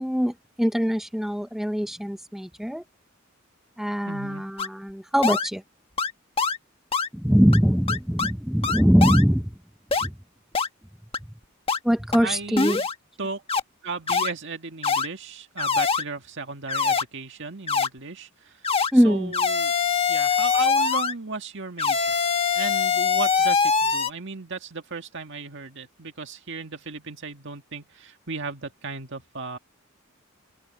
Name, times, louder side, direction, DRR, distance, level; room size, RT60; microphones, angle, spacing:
voice 1, 0.0-2.8 3.8-5.6 7.1-9.5 10.0-10.2 11.8-12.8 18.9-19.3, equal, ahead, 0.6 m, -22 dB
voice 2, 4.1-4.5 12.2-12.9 13.2-13.4 13.8-18.5 19.0-19.7 20.1-22.1 22.5-29.6, right 4 dB, 60° right, 2.0 m, -35 dB
sound 1, 4.6-4.7 5.2-5.5 6.0-6.1 6.4-6.6 6.9-7.1 7.5-7.6 7.9-8.3 8.6-9.2 9.9-10.1 10.5-10.7 11.1-11.2 11.7-11.8 12.1-12.2 12.6-12.9 13.5-13.6 14.1-14.3 14.8-15.1 15.6-16.0 16.7-17.0 17.7-17.9 18.6-18.9 19.3-21.1 21.8-24.1, left 5 dB, 30° left, 1.4 m, -23 dB
head